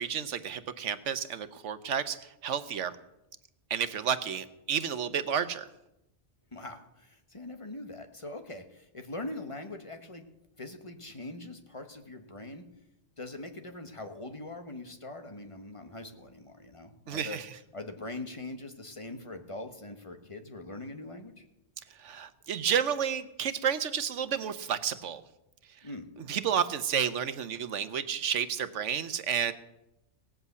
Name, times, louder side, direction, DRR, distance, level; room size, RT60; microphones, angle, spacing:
voice 1, 0.0-2.9 3.7-5.7 17.1-17.5 21.9-25.2 26.3-29.5, right 8 dB, 85° right, 12 dB, 1.2 m, -31 dB
voice 2, 6.5-10.3 10.6-12.7 13.2-17.4 17.7-21.5 25.8-26.1, left 2 dB, 25° left, 6 dB, 1.3 m, -42 dB
17.5 x 7.9 x 8.2 m, 0.89 s
omnidirectional pair, 1.2 m